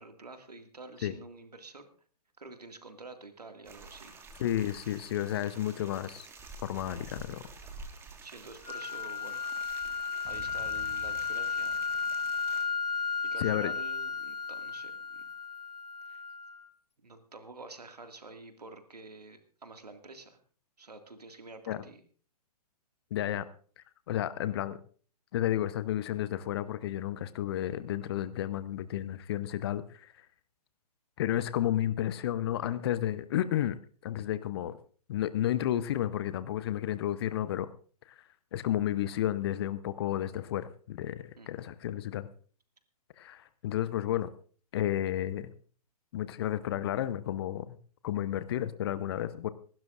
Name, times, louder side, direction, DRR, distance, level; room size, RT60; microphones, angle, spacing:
voice 1, 0.0-1.9 2.4-4.2 8.2-9.4 10.3-11.9 13.2-15.3 16.0-16.3 17.0-20.4 20.8-22.0 41.4-41.5, right 3 dB, 75° right, 7 dB, 2.1 m, -49 dB
sound 1, 3.6-12.6, right 3 dB, 10° right, 1.6 m, -50 dB
voice 2, 4.4-6.3 6.6-7.4 13.4-13.7 21.7-21.8 23.1-23.4 24.1-24.8 25.3-30.1 31.2-33.8 34.0-34.8 35.1-37.7 38.5-42.3 43.2-44.3 44.7-45.5 46.1-47.8 48.0-49.5, left 12 dB, 40° left, 15 dB, 0.8 m, -32 dB
sound 2, 8.7-16.7, left 5 dB, 80° left, 1.2 m, -34 dB
sound 3, 10.2-14.5, right 1 dB, 25° right, 2.7 m, -54 dB
26.0 x 12.0 x 2.5 m, 0.42 s
figure-of-eight pair, 120°, 20 cm